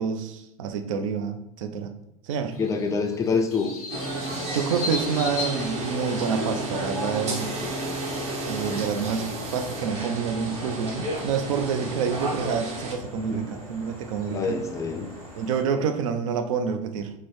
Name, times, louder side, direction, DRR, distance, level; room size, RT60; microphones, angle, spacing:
voice 1, 0.0-1.9 2.2-2.6 4.5-7.5 8.5-14.6 15.4-17.1, right 6 dB, 60° right, 8 dB, 0.4 m, -28 dB
sound 1, 2.5-6.5, left 4 dB, 85° left, 0.6 m, -36 dB
voice 2, 2.6-3.7 13.3-13.5 14.3-15.1, left 4 dB, 15° left, 4 dB, 0.4 m, -26 dB
sound 2, 3.9-12.9, right 1 dB, 35° right, 0.8 m, -32 dB
sound 3, 4.9-15.6, equal, 85° right, 1.5 m, -44 dB
3.7 x 2.1 x 3.0 m, 0.80 s
hypercardioid pair, 85°, 19 cm